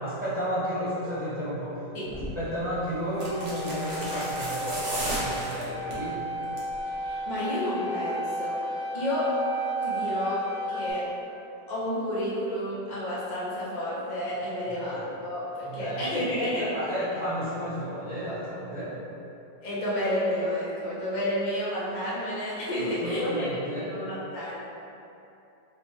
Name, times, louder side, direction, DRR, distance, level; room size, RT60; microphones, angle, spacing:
voice 1, 0.0-1.8 2.1-6.2 14.7-14.8 15.6-16.3 16.6-18.9 22.8-23.9, equal, 5° right, -13 dB, 0.8 m, -32 dB
sound 1, 2.1-2.4 3.1-6.1 6.4-6.8 7.1-7.2, right 1 dB, 55° right, 0.6 m, -34 dB
sound 2, 3.1-10.9, equal, 80° right, 1.5 m, -33 dB
voice 2, 7.0-8.6 8.9-9.3 9.8-10.4 10.7-11.0 11.7-16.7 19.6-23.4 23.8-24.5, equal, 60° left, -8 dB, 0.4 m, -30 dB
5.0 x 2.3 x 2.9 m, 2.8 s
omnidirectional pair, 2.0 m